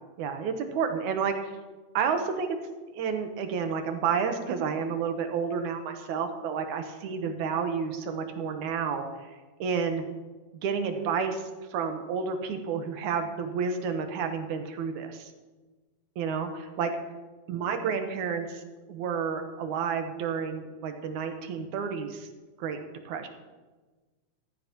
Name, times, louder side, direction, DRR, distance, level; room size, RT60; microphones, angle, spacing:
voice 1, 0.2-1.5 1.9-2.5 2.9-9.3 9.6-10.0 10.6-15.3 16.2-16.9 17.5-18.6 18.9-22.3 22.6-22.8 23.1-23.3, right 6 dB, 75° right, 6 dB, 2.5 m, -30 dB
14.5 x 14.0 x 3.0 m, 1.3 s
omnidirectional pair, 3.6 m